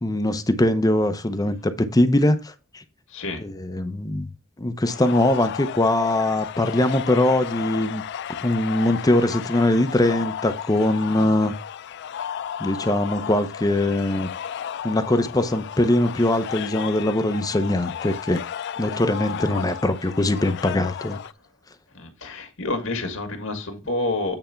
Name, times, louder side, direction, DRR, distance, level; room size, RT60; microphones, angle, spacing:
voice 1, 0.0-2.8 3.4-4.3 4.6-8.0 8.4-11.5 12.6-14.3 14.8-18.4 18.8-21.2, left 1 dB, 20° left, 0.7 m, -22 dB
voice 2, 3.1-3.4 19.2-19.4 21.9-24.4, left 2 dB, 75° left, 1.8 m, -29 dB
sound 1, 4.9-21.3, left 9 dB, 60° left, 0.3 m, -34 dB
8.9 x 3.4 x 5.7 m
head